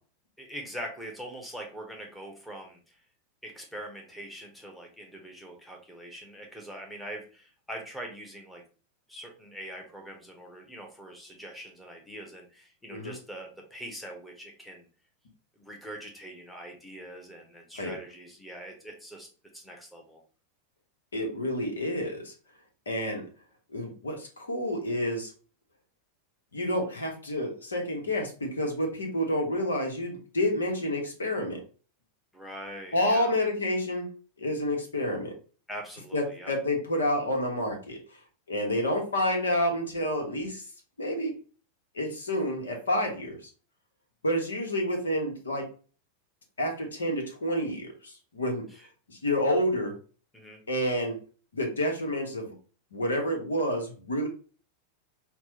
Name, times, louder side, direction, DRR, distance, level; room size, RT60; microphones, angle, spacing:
voice 1, 0.4-3.0 3.4-8.6 9.1-14.9 15.6-19.3 19.5-20.2 32.3-33.3 35.7-36.5 48.7-48.9 50.3-50.6, right 1 dB, 5° left, 1 dB, 1.0 m, -43 dB
voice 2, 21.1-22.3 22.9-23.3 23.7-25.3 26.5-31.6 32.9-34.1 34.4-35.3 36.1-38.0 38.5-40.6 41.0-41.4 41.9-43.4 44.2-45.7 46.6-48.7 49.1-50.0 50.7-51.2 51.5-52.5 52.9-54.3, left 1 dB, 70° left, 2 dB, 1.1 m, -29 dB
5.8 x 2.3 x 2.8 m, 0.38 s
figure-of-eight pair, 90°, 0 cm